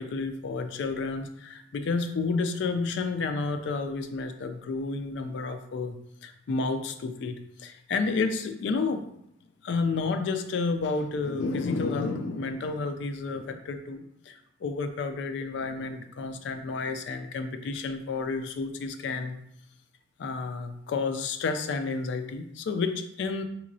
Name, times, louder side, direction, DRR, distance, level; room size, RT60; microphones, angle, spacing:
voice 1, 0.0-9.0 9.6-19.4 20.2-23.4, left 4 dB, 65° left, 7 dB, 0.3 m, -31 dB
3.5 x 2.9 x 2.6 m, 0.75 s
head